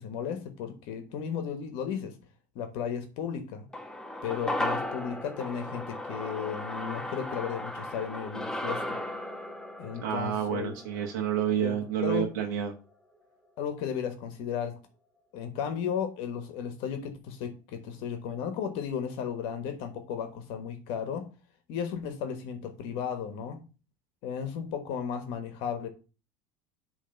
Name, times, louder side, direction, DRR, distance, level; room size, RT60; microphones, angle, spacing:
voice 1, 0.0-2.2 2.5-3.7 4.2-9.0 9.8-10.7 11.5-12.3 13.6-14.8 15.3-21.3 21.7-23.6 24.2-25.9, left 7 dB, 70° left, 1.2 m, -34 dB
sound 1, 3.7-12.2 12.5-12.6, left 1 dB, 5° left, 1.0 m, -36 dB
voice 2, 10.0-12.7, right 9 dB, 90° right, 1.1 m, -29 dB
7.3 x 3.2 x 5.7 m
supercardioid pair, 110°, 9 cm